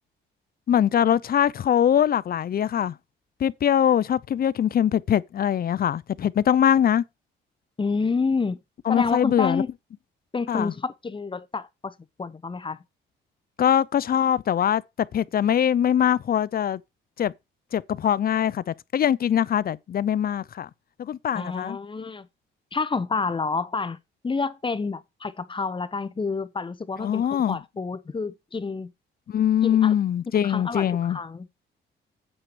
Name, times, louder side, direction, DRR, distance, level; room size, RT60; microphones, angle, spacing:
voice 1, 0.7-3.0 3.4-7.0 8.9-9.6 10.5-10.7 13.6-14.8 15.1-16.8 17.2-17.3 17.7-20.7 21.0-21.8 27.0-27.6 29.3-31.2, left 9 dB, 50° left, 0.6 m, -22 dB
voice 2, 7.8-8.6 8.9-9.7 10.3-12.8 21.3-22.3 22.7-24.0 24.2-27.2 27.5-28.9 29.6-29.9 30.4-31.5, left 4 dB, 25° left, 1.0 m, -28 dB
8.8 x 4.7 x 6.2 m
cardioid pair, 90°, 20 cm